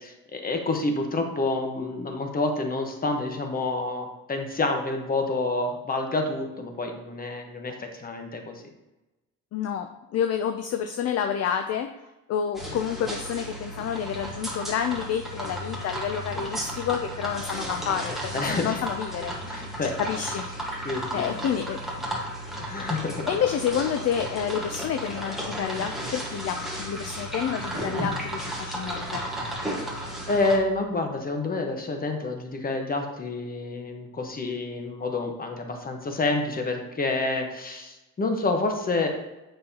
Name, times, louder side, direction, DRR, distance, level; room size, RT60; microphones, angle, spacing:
voice 1, 0.0-8.5 16.3-16.4 18.3-18.8 19.4-19.9 20.8-21.5 22.6-23.3 30.3-39.1, left 2 dB, 25° left, 4 dB, 1.1 m, -28 dB
voice 2, 9.5-11.9 12.3-19.4 19.8-20.4 21.1-21.8 23.3-29.2, left 8 dB, 45° left, 6 dB, 0.5 m, -29 dB
sound 1, 12.5-30.6, equal, ahead, 1.4 m, -34 dB
7.7 x 5.6 x 2.8 m, 1.0 s
cardioid pair, 120°, 34 cm